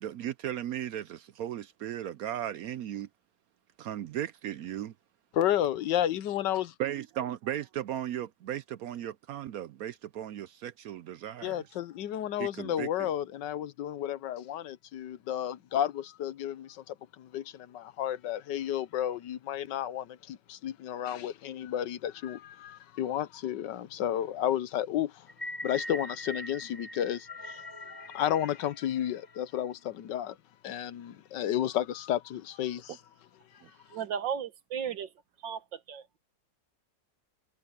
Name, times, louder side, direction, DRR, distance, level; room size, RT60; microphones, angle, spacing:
voice 1, 0.0-3.1 3.8-4.9 6.8-11.6 12.4-13.1 33.6-33.7, right 11 dB, 70° right, 0.9 m, -36 dB
voice 2, 5.3-6.7 11.4-25.3 25.6-30.4 30.6-33.0, left 11 dB, 75° left, 1.5 m, -32 dB
sound 1, 25.3-29.6, left 1 dB, 15° left, 1.8 m, -42 dB
voice 3, 33.9-35.1 35.4-36.2, right 8 dB, 90° right, 2.0 m, -35 dB
omnidirectional pair, 1.9 m